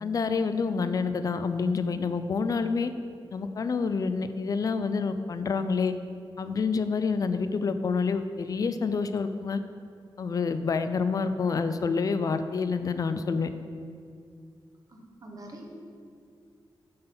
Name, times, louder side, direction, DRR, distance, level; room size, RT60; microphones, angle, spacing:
voice 1, 0.0-2.9 3.3-5.9 6.4-9.6 10.2-13.5, left 5 dB, 45° left, 10 dB, 0.3 m, -28 dB
voice 2, 14.9-15.7, right 2 dB, 45° right, 0 dB, 1.0 m, -46 dB
7.5 x 4.0 x 5.7 m, 2.3 s
wide cardioid pair, 155°, 8 cm